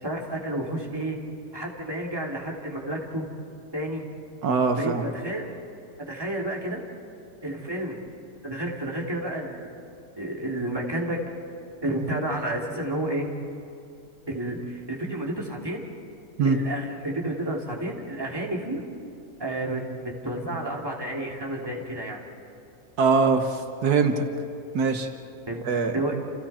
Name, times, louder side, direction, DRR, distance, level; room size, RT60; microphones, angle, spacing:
voice 1, 0.0-1.2 1.5-3.2 3.7-4.0 4.8-5.5 6.1-6.8 7.4-8.0 8.4-9.7 10.2-11.2 11.8-13.3 14.3-15.9 16.4-18.8 19.4-22.2 25.5-25.6 25.9-26.1, right 1 dB, 15° right, -2 dB, 2.9 m, -30 dB
voice 2, 4.4-5.1 16.4-16.6 23.0-24.3 24.7-25.1 25.7-25.9, right 4 dB, 85° right, 6 dB, 1.7 m, -22 dB
29.5 x 29.5 x 4.4 m, 2.5 s
omnidirectional pair, 1.6 m